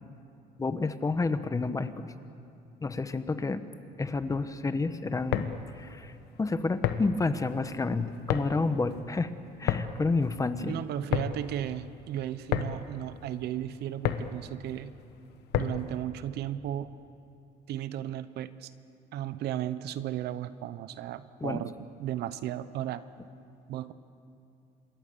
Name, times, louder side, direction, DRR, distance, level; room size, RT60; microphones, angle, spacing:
voice 1, 0.6-2.1 2.8-3.6 4.0-5.5 5.8-6.1 6.4-9.3 9.6-10.7 21.4-21.6, left 3 dB, 20° left, 11 dB, 1.1 m, -29 dB
sound 1, 5.1-16.0, left 10 dB, 80° left, 1.2 m, -34 dB
voice 2, 10.6-15.0 15.5-16.9 17.7-18.7 19.1-21.7 22.0-23.0 23.7-23.9, right 11 dB, 75° right, 14 dB, 0.9 m, -35 dB
26.5 x 21.5 x 7.0 m, 2.6 s
cardioid pair, 110°, 17 cm